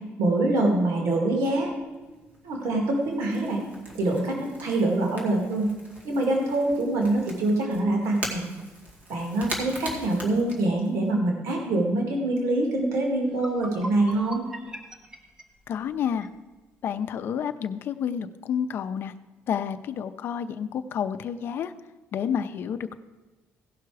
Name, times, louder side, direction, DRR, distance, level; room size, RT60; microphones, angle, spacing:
voice 1, 0.2-1.7 2.4-3.6 4.0-5.7 6.0-8.4 9.1-14.4, right 2 dB, 85° right, 0 dB, 2.0 m, -25 dB
Crackle / Crack, 1.6-11.1, right 1 dB, 35° right, 2.1 m, -41 dB
sound 1, 12.8-12.9 13.3-16.4, right 1 dB, 15° right, 0.9 m, -41 dB
voice 2, 15.7-16.3 16.8-19.1 19.5-21.7 22.1-23.0, left 8 dB, 50° left, 10 dB, 0.6 m, -29 dB
16.5 x 5.8 x 4.8 m, 1.2 s
cardioid pair, 160°, 5 cm